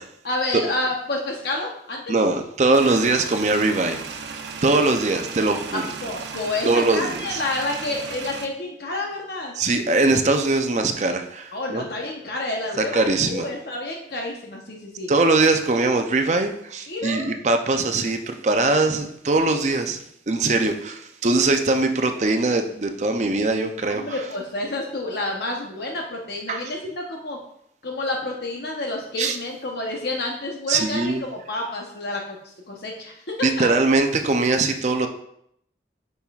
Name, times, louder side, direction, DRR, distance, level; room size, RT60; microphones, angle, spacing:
voice 1, 0.2-2.1 5.7-9.6 11.5-15.1 16.9-17.3 23.9-27.4 27.8-32.4 32.7-33.7, left 2 dB, 65° left, 0 dB, 0.9 m, -29 dB
voice 2, 2.1-4.0 4.6-5.8 6.6-7.4 9.6-11.8 12.8-13.5 15.1-24.1 26.5-26.6 29.2-29.4 30.7-31.2 33.4-35.1, right 3 dB, 40° right, 6 dB, 0.5 m, -21 dB
sound 1, 2.7-8.5, right 5 dB, 80° right, 0.7 m, -35 dB
8.7 x 5.4 x 2.4 m, 0.72 s
head